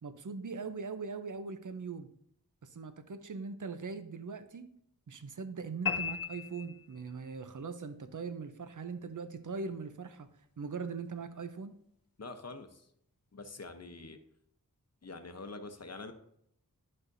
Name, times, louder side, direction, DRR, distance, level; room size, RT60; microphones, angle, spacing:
voice 1, 0.0-2.1 2.6-4.7 5.1-11.7, right 4 dB, 55° right, 10 dB, 0.7 m, -41 dB
sound 1, 5.9-7.4, left 7 dB, 70° left, 0.7 m, -36 dB
voice 2, 12.2-12.9 13.3-14.2 15.0-16.1, left 3 dB, 45° left, 8 dB, 0.8 m, -45 dB
11.0 x 5.8 x 2.6 m, 0.71 s
wide cardioid pair, 45°, 36 cm